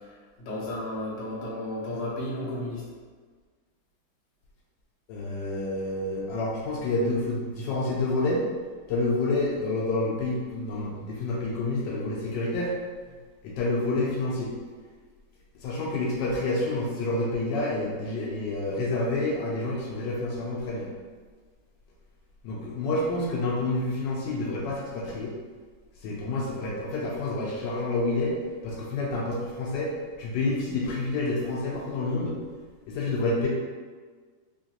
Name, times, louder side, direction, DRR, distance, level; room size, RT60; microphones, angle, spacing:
voice 1, 0.4-2.8, left 1 dB, 50° left, -5 dB, 1.0 m, -33 dB
voice 2, 5.1-8.4 8.9-12.7 13.4-14.5 15.5-20.9 22.4-25.3 26.0-28.4 28.6-29.9 30.2-32.4 32.9-33.5, left 2 dB, 75° left, -3 dB, 1.2 m, -28 dB
3.7 x 2.8 x 2.8 m, 1.5 s
omnidirectional pair, 2.1 m